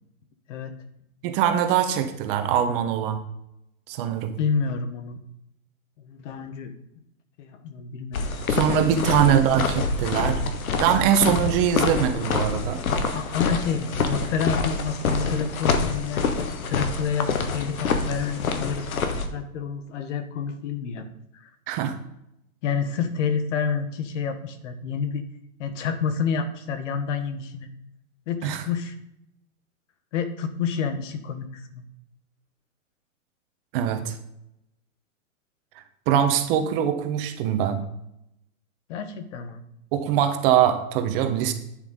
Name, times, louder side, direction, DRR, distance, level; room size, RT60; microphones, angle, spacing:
voice 1, 1.2-3.2 3.9-4.3 8.5-10.5 10.8-12.8 21.7-22.0 28.4-28.6 33.7-34.1 36.1-37.8 39.9-41.5, right 9 dB, 40° right, 7 dB, 1.2 m, -22 dB
voice 2, 4.4-5.2 6.0-6.7 7.4-8.3 8.8-8.9 12.9-16.2 16.7-21.1 21.4-21.5 22.6-25.2 25.6-27.7 28.3-29.0 30.1-31.8 38.9-39.6, left 6 dB, 55° left, 9 dB, 1.3 m, -29 dB
sound 1, 8.1-19.3, left 4 dB, 75° left, 1.4 m, -26 dB
9.4 x 7.2 x 3.9 m, 0.80 s
hypercardioid pair, 125°, 43 cm